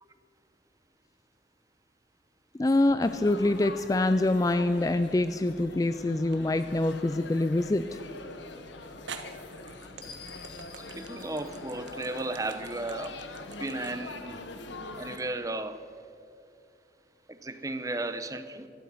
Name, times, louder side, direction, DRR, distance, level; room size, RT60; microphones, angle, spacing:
voice 1, 2.6-8.0, left 2 dB, 20° left, 11 dB, 0.3 m, -25 dB
Laughter / Chatter / Crowd, 3.0-15.2, left 3 dB, 80° left, 1.2 m, -44 dB
sound 1, 5.0-5.6 6.3-6.4 8.3-8.4 9.1-15.3, right 5 dB, 75° right, 1.3 m, -46 dB
sound 2, 5.4-12.9, left 5 dB, 50° left, 2.8 m, -54 dB
voice 2, 10.8-13.3 13.6-14.4 15.0-15.9 17.3-18.7, right 2 dB, 20° right, 11 dB, 0.7 m, -35 dB
16.5 x 12.5 x 5.6 m, 2.6 s
head